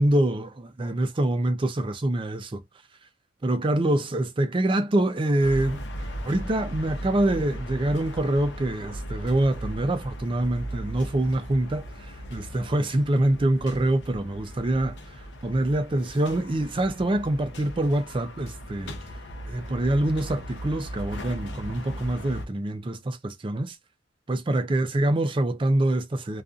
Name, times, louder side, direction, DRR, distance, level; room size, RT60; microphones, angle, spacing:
voice 1, 0.0-2.6 3.4-5.8 6.2-19.0 19.5-23.8 24.3-26.4, right 1 dB, 30° right, 0.4 m, -25 dB
sound 1, 5.4-22.5, equal, 65° left, 0.7 m, -38 dB
2.5 x 2.4 x 2.4 m
head